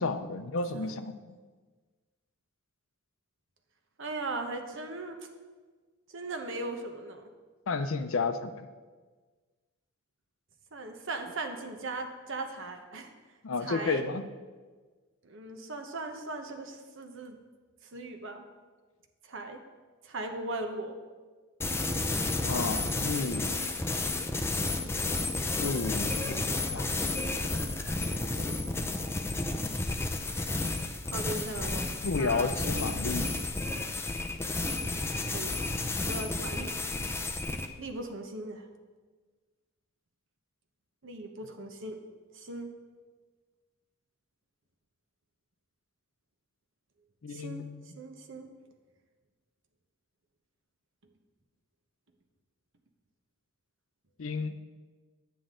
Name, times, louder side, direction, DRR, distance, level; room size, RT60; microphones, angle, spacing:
voice 1, 0.0-1.4 7.7-8.7 13.4-14.2 22.4-23.7 25.5-26.9 32.0-33.4 47.2-47.9 54.2-54.6, left 4 dB, 65° left, 11 dB, 0.6 m, -32 dB
voice 2, 4.0-5.2 6.1-7.3 10.7-13.1 13.6-14.0 15.2-17.4 17.9-18.4 19.3-19.6 20.0-20.9 28.3-28.6 31.1-31.9 32.2-32.5 35.3-35.5 36.1-36.8 37.8-38.7 41.0-42.0 42.3-42.7 47.3-47.6 47.9-48.5, right 2 dB, 60° right, 5 dB, 1.1 m, -38 dB
sound 1, 21.6-37.7, left 2 dB, 10° left, 0.5 m, -32 dB
10.0 x 9.2 x 3.8 m, 1.4 s
head